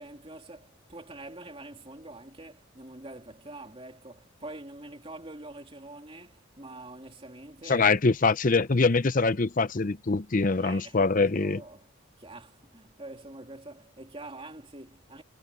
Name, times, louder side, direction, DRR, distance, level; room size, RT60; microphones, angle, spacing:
voice 1, 0.0-7.9 10.5-11.9 12.2-15.2, right 2 dB, 25° right, 3.1 m, -45 dB
voice 2, 7.7-11.6, left 3 dB, 40° left, 0.6 m, -24 dB
head